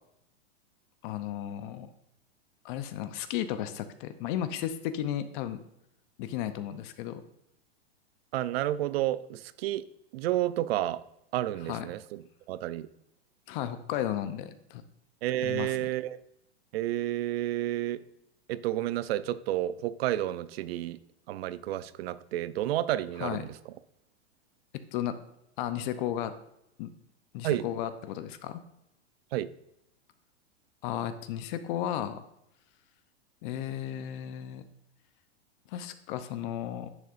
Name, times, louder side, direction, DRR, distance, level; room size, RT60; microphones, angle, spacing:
voice 1, 1.0-1.9 2.6-5.6 6.2-7.2 11.7-11.9 13.5-14.8 15.4-15.7 23.2-23.4 24.9-25.1 25.6-26.3 26.8-26.9 27.3-28.6 30.8-32.2 33.4-34.6 35.7-36.9, left 11 dB, 50° left, 11 dB, 0.7 m, -34 dB
voice 2, 8.3-9.8 10.1-11.0 11.3-12.9 15.2-16.2 16.7-18.0 18.5-21.0 21.3-23.6 27.4-27.7 29.3-29.5, right 14 dB, 65° right, 16 dB, 0.6 m, -31 dB
10.5 x 6.6 x 2.6 m, 0.80 s
hypercardioid pair, 130°, 33 cm